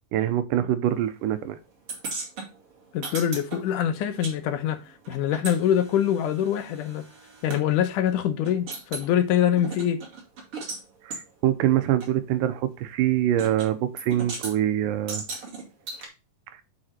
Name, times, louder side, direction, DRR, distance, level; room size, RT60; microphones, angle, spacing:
voice 1, 0.1-1.6 11.1-11.2 11.4-15.2, right 12 dB, 80° right, 2.4 m, -24 dB
sound 1, 1.9-4.4 4.6-7.6 8.1-8.2 8.4-9.1 9.6-10.8 11.1-11.2 12.0-12.1 13.4-13.7 14.0-14.5 15.1-16.1, right 3 dB, 45° right, 3.3 m, -37 dB
voice 2, 2.9-4.8 5.1-7.1 7.4-10.0, left 10 dB, 75° left, 2.3 m, -24 dB
7.8 x 5.2 x 4.3 m
omnidirectional pair, 3.8 m